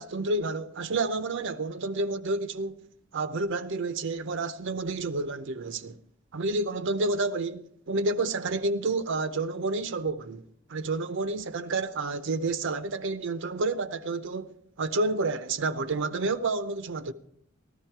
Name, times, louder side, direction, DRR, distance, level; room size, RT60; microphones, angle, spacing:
voice 1, 0.0-2.8 3.1-6.0 6.3-10.4 10.7-17.1, right 3 dB, 60° right, 0.6 m, -30 dB
14.0 x 13.0 x 4.5 m
head